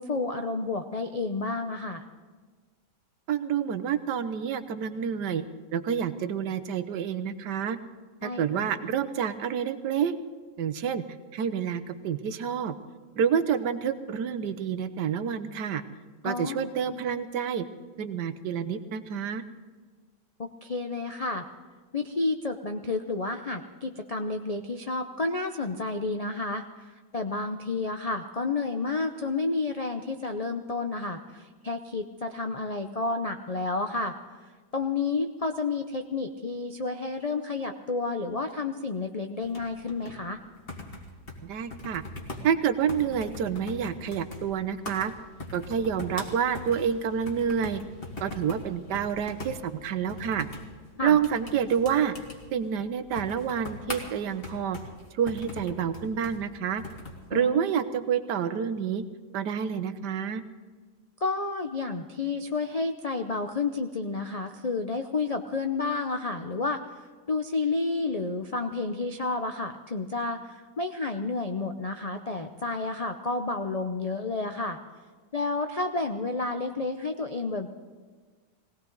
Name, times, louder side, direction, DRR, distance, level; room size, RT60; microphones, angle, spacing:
voice 1, 0.0-2.0 8.2-8.7 16.2-16.7 20.4-21.5 21.9-34.2 34.7-40.4 51.0-51.2 57.3-57.7 61.2-66.8 67.3-74.8 75.3-77.7, left 3 dB, 60° left, 5 dB, 0.3 m, -30 dB
voice 2, 3.3-5.4 5.7-7.8 8.2-10.1 10.6-11.0 11.3-12.8 13.2-15.8 16.2-17.6 18.0-19.4 41.4-42.0 42.4-45.1 45.5-47.8 48.2-50.5 51.0-52.2 52.5-54.8 55.2-56.8 57.3-59.0 59.3-60.4, right 8 dB, 80° right, 11 dB, 1.5 m, -28 dB
sound 1, 39.4-57.2, left 2 dB, 35° left, 2.1 m, -42 dB
20.5 x 17.5 x 4.0 m, 1.4 s
omnidirectional pair, 1.8 m